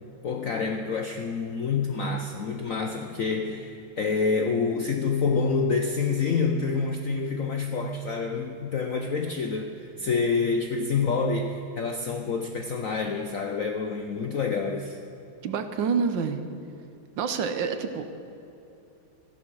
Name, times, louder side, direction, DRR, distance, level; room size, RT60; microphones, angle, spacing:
voice 1, 0.2-15.0, left 4 dB, 65° left, 4 dB, 0.8 m, -27 dB
voice 2, 15.4-16.4 17.2-18.0, right 6 dB, 70° right, 9 dB, 1.5 m, -27 dB
14.5 x 12.0 x 6.2 m, 2.9 s
omnidirectional pair, 2.3 m